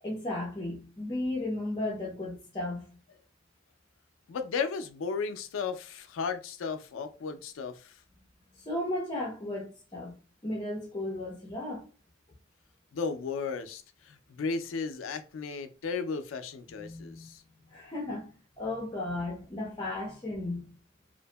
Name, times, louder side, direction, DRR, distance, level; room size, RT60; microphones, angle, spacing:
voice 1, 0.0-2.9 8.5-10.1 10.4-11.9 16.8-17.3 17.7-20.7, left 1 dB, 20° left, 0.6 m, -35 dB
voice 2, 4.3-8.0 12.9-17.4, left 5 dB, 85° left, 0.4 m, -35 dB
2.7 x 2.5 x 2.2 m
head